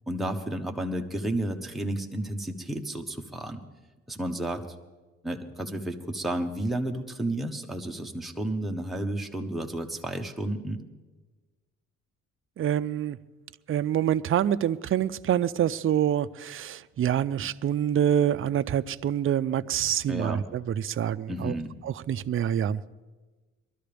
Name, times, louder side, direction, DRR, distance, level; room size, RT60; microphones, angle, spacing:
voice 1, 0.1-3.6 4.1-4.6 5.2-10.8 20.1-20.4 21.3-21.7, right 1 dB, ahead, 2 dB, 1.1 m, -32 dB
voice 2, 12.6-13.2 13.7-21.5 21.8-22.8, right 10 dB, 45° right, 13 dB, 0.5 m, -26 dB
23.0 x 13.0 x 3.4 m, 1.2 s
cardioid pair, 90°, 30 cm